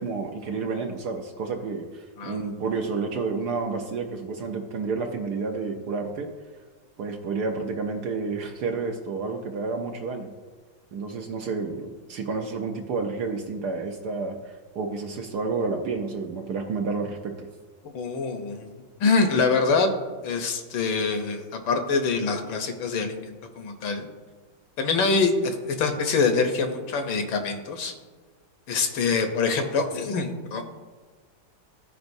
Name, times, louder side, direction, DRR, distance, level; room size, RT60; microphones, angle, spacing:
voice 1, 0.0-6.3 7.0-10.3 10.9-17.5, right 4 dB, 65° right, 3 dB, 1.1 m, -30 dB
voice 2, 17.8-18.7 19.0-19.9 20.2-24.1 24.8-27.9 28.7-30.6, left 4 dB, 75° left, 5 dB, 1.6 m, -25 dB
15.0 x 5.1 x 2.6 m, 1.4 s
omnidirectional pair, 2.2 m